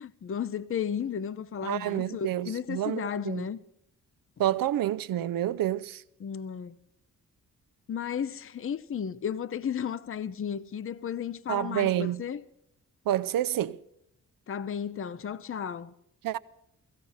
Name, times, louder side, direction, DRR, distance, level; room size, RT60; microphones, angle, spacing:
voice 1, 0.0-3.6 6.2-6.8 7.9-12.4 14.5-15.9, left 8 dB, 40° left, 0.7 m, -34 dB
voice 2, 1.6-3.5 4.4-6.0 11.5-12.2 13.1-13.8 16.2-16.4, right 12 dB, 80° right, 0.7 m, -28 dB
16.5 x 16.0 x 5.6 m
cardioid pair, 95°, 34 cm